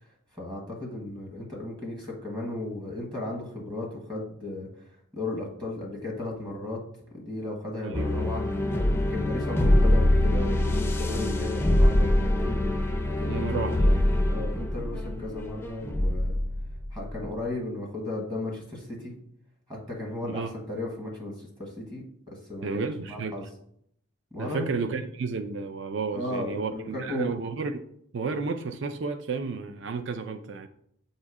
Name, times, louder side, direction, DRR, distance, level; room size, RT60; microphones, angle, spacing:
voice 1, 0.0-6.8 7.1-8.4 9.1-12.6 13.2-13.7 14.3-16.4 16.9-19.1 19.7-22.0 22.3-23.4 24.3-24.6 26.1-27.3, left 1 dB, 20° right, 1.1 m, -35 dB
voice 2, 7.8-8.3 13.3-14.0 20.2-20.5 22.6-23.4 24.4-27.8 28.1-30.7, right 4 dB, 60° right, 0.4 m, -32 dB
sound 1, 7.9-17.4, left 1 dB, 10° left, 0.4 m, -24 dB
7.4 x 2.7 x 4.8 m
head